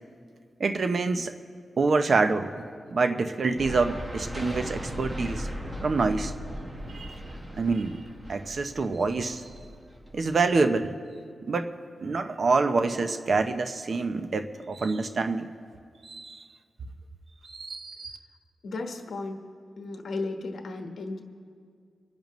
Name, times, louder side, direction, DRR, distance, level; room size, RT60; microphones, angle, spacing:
voice 1, 0.6-1.3 1.8-2.5 2.9-5.5 5.8-6.3 6.9-7.1 7.5-8.0 8.3-9.4 10.1-10.9 11.5-11.7 12.0-15.5 16.0-16.4 17.4-18.2, right 3 dB, 50° right, 8 dB, 0.7 m, -26 dB
sound 1, 3.6-10.6, equal, 20° right, 1.5 m, -38 dB
voice 2, 18.6-19.4 19.8-21.2, left 3 dB, 70° left, 3 dB, 1.3 m, -34 dB
27.0 x 10.5 x 3.1 m, 2.2 s
wide cardioid pair, 140°, 0 cm